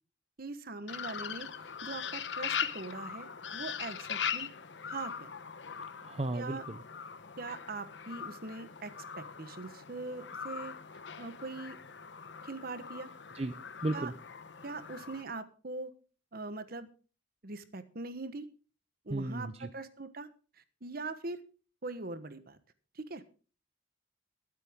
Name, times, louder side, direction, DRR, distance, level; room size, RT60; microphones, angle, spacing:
voice 1, 0.4-4.5 4.9-5.3 6.3-6.6 7.4-10.7 11.2-11.8 12.4-13.1 13.9-14.1 14.6-15.9 16.3-16.9 17.4-18.5 19.0-20.3 20.8-21.4 21.8-22.6 22.9-23.2, right 3 dB, 55° right, 12 dB, 1.2 m, -42 dB
sound 1, 0.9-15.2, left 7 dB, 70° left, 0.9 m, -41 dB
voice 2, 6.0-6.8 13.3-13.5 13.8-14.1 19.1-19.7, right 2 dB, 35° right, 9 dB, 0.7 m, -34 dB
22.5 x 8.3 x 3.6 m, 0.37 s
head